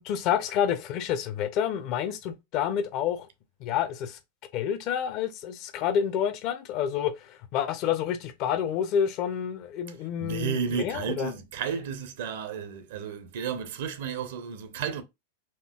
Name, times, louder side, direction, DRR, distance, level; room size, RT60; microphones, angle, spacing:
voice 1, 0.0-3.3 3.6-4.2 4.5-11.3, left 9 dB, 40° left, 0.5 m, -29 dB
voice 2, 10.2-15.0, right 7 dB, 55° right, 0.7 m, -32 dB
4.4 x 2.7 x 2.2 m
figure-of-eight pair, 90°, 0 cm